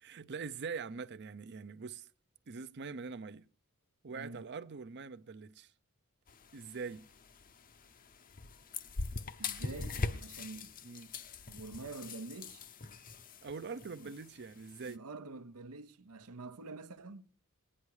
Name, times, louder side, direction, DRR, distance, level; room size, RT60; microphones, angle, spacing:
voice 1, 0.0-2.1 2.5-3.4 4.0-5.7 6.5-7.0 10.8-11.1 13.4-15.0, right 5 dB, 50° right, 0.6 m, -43 dB
voice 2, 4.1-4.4 9.4-10.7 11.5-12.6 14.0-14.1 14.8-17.2, right 3 dB, 85° right, 0.9 m, -47 dB
sound 1, 6.3-15.0, left 3 dB, 40° left, 0.7 m, -43 dB
19.5 x 9.8 x 4.8 m
head